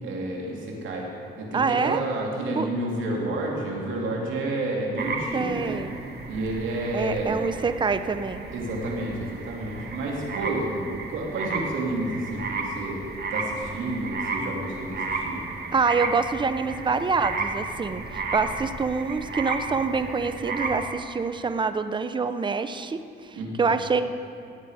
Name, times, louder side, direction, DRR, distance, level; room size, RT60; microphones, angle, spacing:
voice 1, 0.0-1.1 1.4-5.8 6.3-7.5 8.5-13.0 13.3-15.4 23.3-23.7, right 2 dB, 75° right, -2 dB, 2.8 m, -30 dB
voice 2, 1.5-2.0 2.6-2.7 5.3-5.9 6.9-8.4 15.7-24.0, right 4 dB, 25° right, 11 dB, 0.6 m, -26 dB
sound 1, 5.0-20.8, right 3 dB, 55° right, 1.4 m, -33 dB
17.0 x 8.4 x 4.9 m, 2.5 s
cardioid pair, 90°, 20 cm